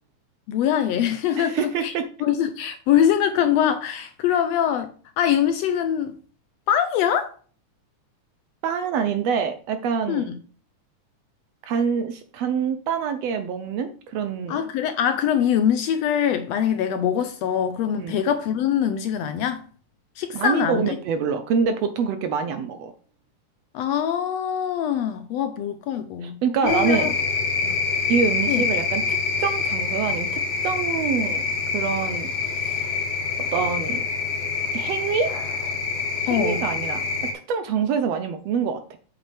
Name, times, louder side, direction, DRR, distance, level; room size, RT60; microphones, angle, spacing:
voice 1, 0.5-1.9 2.2-4.9 5.2-6.1 6.7-7.3 10.1-10.4 14.5-19.6 20.2-21.0 23.7-27.1 27.6-27.7 28.5-28.6 36.3-36.6, left 9 dB, 75° left, 1.6 m, -23 dB
voice 2, 1.4-2.0 8.6-10.3 11.6-14.6 18.0-18.2 20.3-22.9 26.2-27.1 28.1-29.0 29.4-31.5 31.7-32.3 33.5-34.0 34.7-35.3 36.2-37.0 37.5-39.0, right 6 dB, 70° right, 1.7 m, -25 dB
sound 1, 26.6-37.3, left 5 dB, 55° left, 2.9 m, -26 dB
7.8 x 7.4 x 3.4 m
omnidirectional pair, 3.4 m